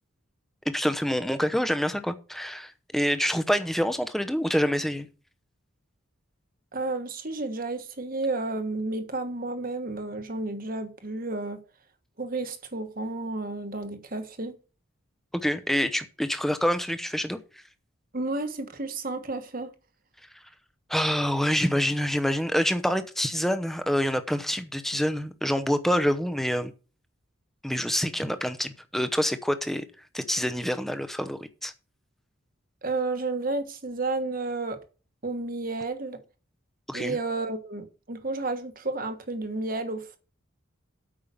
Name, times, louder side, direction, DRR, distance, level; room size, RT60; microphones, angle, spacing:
voice 1, 0.7-5.1 15.3-17.4 20.9-26.7 27.6-29.8 30.1-31.7 36.9-37.2, equal, ahead, 0.7 m, -26 dB
voice 2, 6.7-11.6 12.2-14.6 18.1-19.7 32.8-34.8 35.2-36.2 36.9-40.2, right 2 dB, 40° right, 1.3 m, -31 dB
8.8 x 5.6 x 6.9 m
head